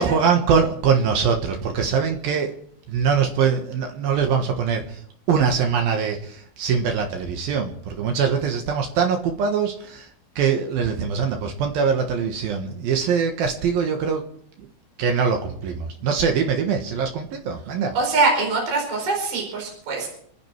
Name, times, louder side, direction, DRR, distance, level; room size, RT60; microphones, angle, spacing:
voice 1, 0.0-2.5 2.9-4.8 5.3-10.1 10.4-14.2 14.6-14.7 15.0-17.9, right 6 dB, 70° right, 4 dB, 2.4 m, -22 dB
voice 2, 17.9-20.1, right 3 dB, 40° right, 0 dB, 5.9 m, -23 dB
29.5 x 10.5 x 4.5 m, 0.65 s
omnidirectional pair, 5.9 m